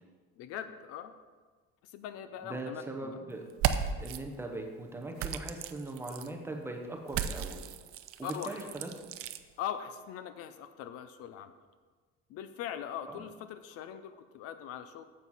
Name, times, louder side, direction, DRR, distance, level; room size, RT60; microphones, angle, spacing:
voice 1, 0.4-1.1 1.8-3.2 8.2-8.7 9.6-11.5 12.3-15.0, left 9 dB, 55° left, 11 dB, 0.5 m, -41 dB
voice 2, 2.4-3.5 4.0-7.6 8.2-8.9 13.1-13.2, right 2 dB, 10° right, 2 dB, 0.6 m, -40 dB
sound 1, 3.5-4.2 5.2-6.3 7.1-9.4, right 9 dB, 50° right, 0.5 m, -34 dB
9.2 x 7.3 x 4.1 m, 1.4 s
cardioid pair, 180°, 29 cm